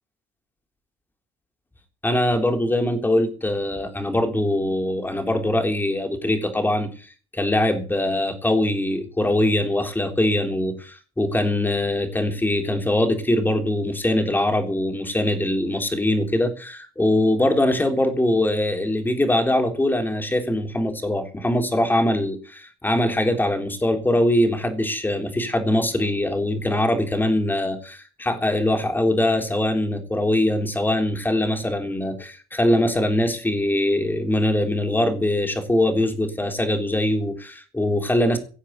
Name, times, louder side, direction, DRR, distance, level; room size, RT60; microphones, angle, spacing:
voice 1, 2.0-6.9 7.3-38.4, left 1 dB, 10° left, 6 dB, 3.6 m, -22 dB
17.5 x 7.3 x 8.0 m, 0.38 s
cardioid pair, 110°, 17 cm